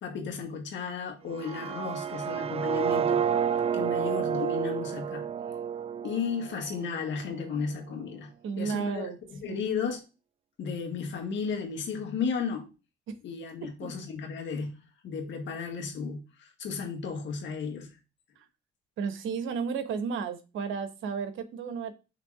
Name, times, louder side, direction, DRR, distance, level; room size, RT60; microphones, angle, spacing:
voice 1, 0.0-3.2 3.7-5.3 6.0-8.3 8.6-10.0 10.6-12.7 13.2-14.8 15.0-18.0, left 5 dB, 70° left, 1.9 m, -34 dB
sound 1, 1.3-7.3, right 8 dB, 30° right, 0.4 m, -30 dB
voice 2, 8.4-9.2 9.5-9.6 13.1-13.2 13.6-13.9 18.4-18.5 19.0-21.9, right 5 dB, 80° right, 1.1 m, -33 dB
5.8 x 3.6 x 4.8 m
cardioid pair, 90°, 20 cm